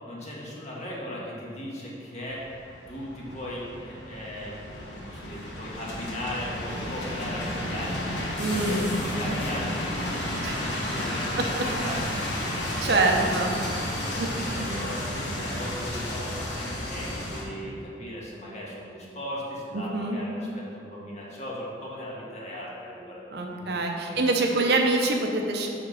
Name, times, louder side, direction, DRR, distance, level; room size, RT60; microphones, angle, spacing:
voice 1, 0.1-2.4 2.9-8.2 8.5-11.5 11.8-12.0 12.3-13.4 13.9-23.2 23.5-23.7 24.1-24.6, equal, 40° left, -5 dB, 1.4 m, -38 dB
sound 1, 2.2-17.4, left 1 dB, 75° left, 1.3 m, -32 dB
voice 2, 8.4-8.8 10.4-10.6 11.4-11.5 12.8-13.5 14.2-14.8 19.7-20.2 23.3-25.7, right 2 dB, 60° right, 2 dB, 0.7 m, -25 dB
5.8 x 4.3 x 6.3 m, 2.7 s
head